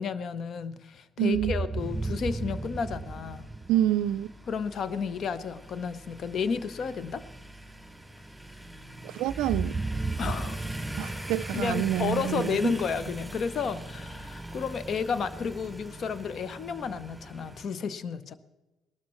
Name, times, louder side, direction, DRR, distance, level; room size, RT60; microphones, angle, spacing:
voice 1, 0.0-3.5 4.5-7.2 10.2-10.7 11.5-18.4, left 6 dB, 55° left, 0.8 m, -32 dB
voice 2, 1.2-1.5 3.7-4.3 9.0-9.8 11.0-12.7, right 12 dB, 75° right, 0.3 m, -27 dB
sound 1, 1.3-4.3 9.3-12.5, right 3 dB, 25° right, 0.6 m, -34 dB
sound 2, 1.8-17.7, right 1 dB, 5° left, 4.0 m, -42 dB
19.5 x 12.5 x 3.1 m
hypercardioid pair, 55°, 0 cm